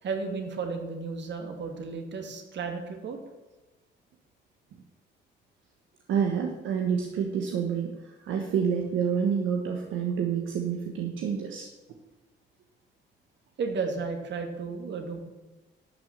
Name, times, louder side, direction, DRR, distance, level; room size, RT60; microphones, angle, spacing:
voice 1, 0.0-3.2 13.6-15.2, right 4 dB, 65° right, 4 dB, 2.5 m, -33 dB
voice 2, 6.1-11.7, right 7 dB, 85° right, 2 dB, 1.4 m, -28 dB
12.0 x 6.6 x 7.4 m, 1.1 s
cardioid pair, 90°, 20 cm